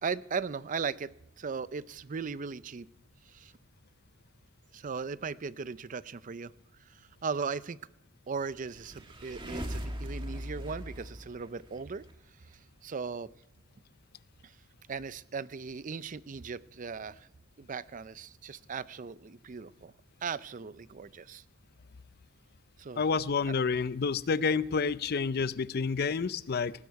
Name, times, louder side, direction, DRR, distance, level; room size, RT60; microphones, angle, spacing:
voice 1, 0.0-1.1 1.4-2.9 3.3-3.5 4.7-6.5 6.9-7.8 8.3-12.0 12.8-13.3 14.4-14.5 14.9-17.3 17.6-19.9 20.2-21.4 22.8-23.0 23.5-23.6, right 5 dB, 40° right, 17 dB, 0.5 m, -37 dB
sound 1, 8.5-12.1, equal, 25° right, 1.7 m, -40 dB
voice 2, 23.0-26.7, left 5 dB, 50° left, 17 dB, 0.5 m, -29 dB
19.5 x 16.0 x 4.7 m, 0.90 s
head